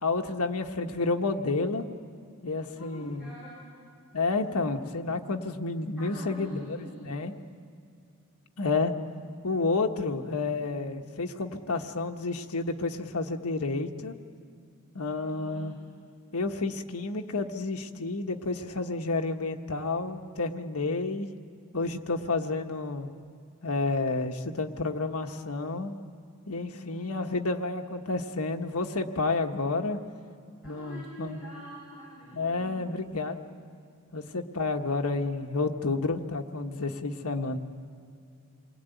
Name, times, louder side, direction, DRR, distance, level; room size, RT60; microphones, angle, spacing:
voice 1, 0.0-1.9 2.4-3.3 4.1-7.3 8.6-8.9 9.4-14.2 14.9-15.7 16.3-21.3 21.7-23.1 23.6-25.9 26.5-30.0 30.6-31.4 32.3-33.4 34.1-37.6, left 3 dB, 85° left, 4 dB, 1.4 m, -30 dB
voice 2, 2.7-3.6 6.0-7.2 15.0-15.8 26.6-27.2 30.6-33.0, right 1 dB, 5° right, -9 dB, 7.4 m, -46 dB
28.0 x 21.0 x 9.3 m, 2.4 s
head